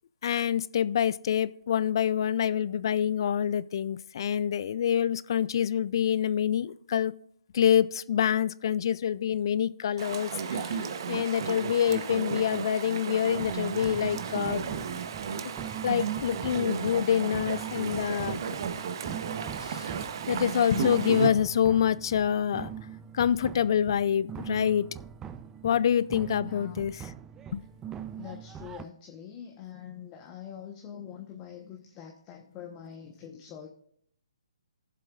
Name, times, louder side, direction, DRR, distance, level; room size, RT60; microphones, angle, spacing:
voice 1, 0.2-7.1 7.5-10.8 11.1-14.7 15.8-18.4 19.6-19.9 20.3-22.7 23.1-24.9 25.6-26.9 27.5-27.6, left 9 dB, 55° left, 18 dB, 0.4 m, -26 dB
Chatter / Stream, 10.0-21.3, right 6 dB, 50° right, 0.8 m, -34 dB
sound 1, 13.3-28.8, right 9 dB, 15° right, 0.4 m, -42 dB
voice 2, 26.4-26.8 28.2-33.7, left 9 dB, 25° left, 2 dB, 1.0 m, -44 dB
19.5 x 7.5 x 2.4 m, 0.65 s
hypercardioid pair, 145°, 3 cm